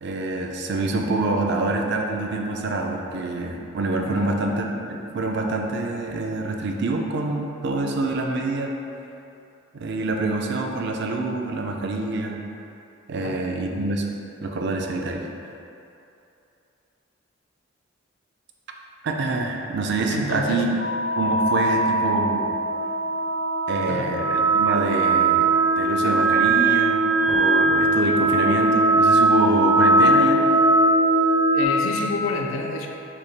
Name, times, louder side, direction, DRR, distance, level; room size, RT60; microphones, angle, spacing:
voice 1, 0.0-8.7 9.7-12.4 13.1-14.1 14.4-15.3 19.0-20.7 21.2-22.6 23.7-25.5 25.8-30.5, right 2 dB, 55° right, 1 dB, 0.4 m, -26 dB
voice 2, 20.1-20.6 21.9-22.0 23.9-24.2 31.5-32.9, left 2 dB, 70° left, 2 dB, 0.4 m, -29 dB
sound 1, 20.8-31.7, right 2 dB, 70° right, 0.9 m, -20 dB
6.5 x 2.3 x 3.3 m, 2.7 s
head